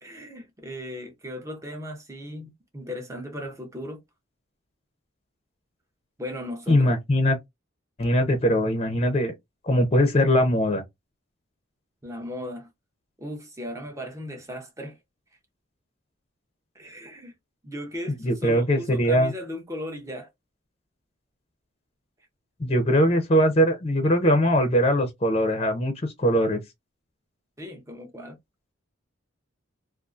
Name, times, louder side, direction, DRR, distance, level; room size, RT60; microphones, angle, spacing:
voice 1, 0.0-4.0 6.2-6.9 12.0-12.7 13.2-15.0 16.7-17.3 17.6-20.3 27.6-28.4, left 1 dB, 15° right, 0.6 m, -37 dB
voice 2, 6.7-7.4 8.0-9.3 9.6-10.8 18.2-19.3 22.6-26.6, equal, 30° left, 0.5 m, -21 dB
2.5 x 2.4 x 2.4 m
head